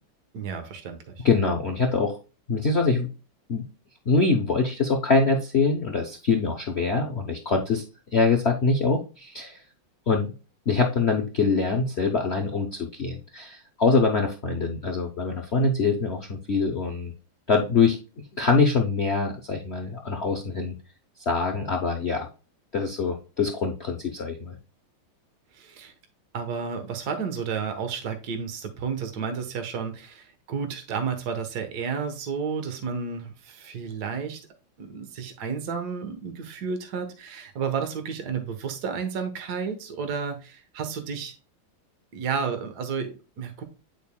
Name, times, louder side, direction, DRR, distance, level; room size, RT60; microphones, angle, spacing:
voice 1, 0.3-1.2 25.5-25.9 26.3-34.4 34.8-41.3 42.1-43.6, right 6 dB, 55° right, 7 dB, 1.5 m, -32 dB
voice 2, 1.2-2.2 2.5-3.1 3.5-3.7 4.1-7.8 8.1-9.6 10.1-10.3 10.7-17.1 17.5-18.0 18.3-20.7 21.3-22.3 22.7-24.6, left 4 dB, 75° left, 3 dB, 0.5 m, -24 dB
8.8 x 5.2 x 2.2 m, 0.32 s
omnidirectional pair, 2.4 m